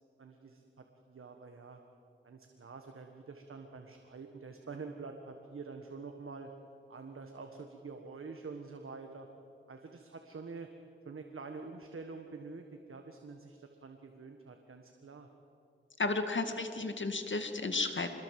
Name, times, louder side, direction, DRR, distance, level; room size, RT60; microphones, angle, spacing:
voice 1, 0.2-1.8 2.2-6.5 6.9-9.3 9.7-10.7 11.0-15.3, right 4 dB, 85° right, 5 dB, 1.6 m, -47 dB
voice 2, 16.0-18.1, left 3 dB, 65° left, 7 dB, 2.3 m, -33 dB
26.5 x 21.5 x 7.7 m, 2.5 s
wide cardioid pair, 55°, 21 cm